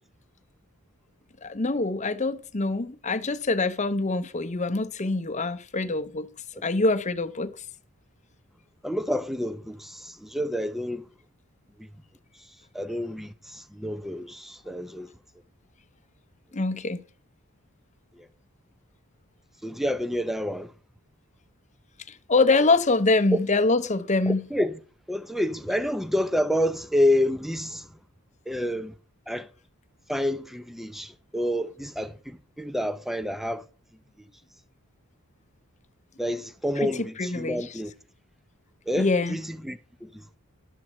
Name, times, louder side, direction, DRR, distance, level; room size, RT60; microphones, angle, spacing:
voice 1, 1.4-6.3 6.6-7.5 16.5-17.0 22.3-24.4 36.8-37.6 39.0-39.4, left 3 dB, 30° left, 0.8 m, -24 dB
voice 2, 8.8-11.0 11.8-11.9 12.7-15.1 18.2-18.3 19.6-20.7 23.3-23.4 24.3-24.8 25.1-27.9 28.5-28.9 29.3-29.5 30.1-33.6 36.2-37.9 38.9-40.1, left 1 dB, ahead, 0.6 m, -28 dB
12.0 x 4.7 x 7.3 m
head